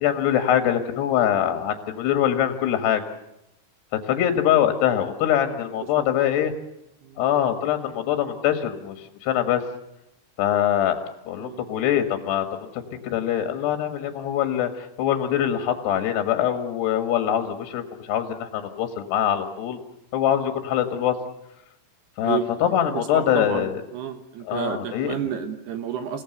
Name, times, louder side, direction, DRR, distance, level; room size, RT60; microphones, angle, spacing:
voice 1, 0.0-3.0 4.1-6.5 7.2-9.6 10.4-11.0 11.3-19.8 20.1-21.1 22.2-23.8 24.5-25.1, left 10 dB, 65° left, 6 dB, 3.2 m, -23 dB
voice 2, 6.0-6.3 7.0-7.2 11.4-11.7 22.2-26.2, right 8 dB, 70° right, 7 dB, 2.7 m, -31 dB
28.0 x 17.5 x 7.9 m, 0.87 s
omnidirectional pair, 5.9 m